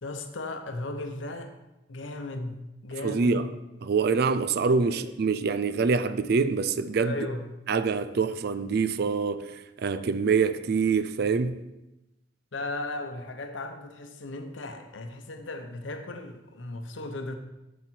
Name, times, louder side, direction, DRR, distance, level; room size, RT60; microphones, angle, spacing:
voice 1, 0.0-1.5 1.9-3.5 4.7-5.1 7.0-7.5 12.5-17.4, left 2 dB, 85° left, 0.9 m, -36 dB
voice 2, 3.0-3.5 3.8-7.2 7.7-11.6, right 5 dB, 55° right, 0.4 m, -25 dB
8.2 x 7.3 x 4.5 m
head